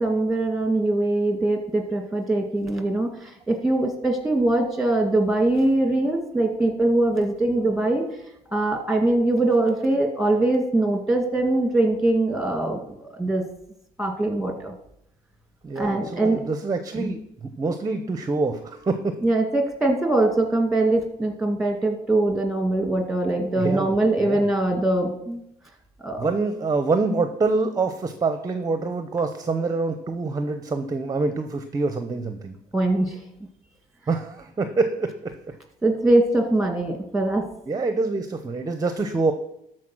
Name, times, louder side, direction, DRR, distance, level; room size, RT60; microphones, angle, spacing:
voice 1, 0.0-8.1 8.5-13.4 14.0-14.7 15.8-16.4 17.0-17.1 19.2-25.4 26.0-26.2 32.7-33.2 35.8-37.4, right 2 dB, ahead, 4 dB, 2.0 m, -22 dB
voice 2, 15.6-19.1 23.5-24.5 26.2-32.5 34.1-35.4 37.7-39.3, right 3 dB, 20° right, 9 dB, 0.7 m, -26 dB
13.0 x 4.5 x 6.1 m, 0.77 s
cardioid pair, 110°, 17 cm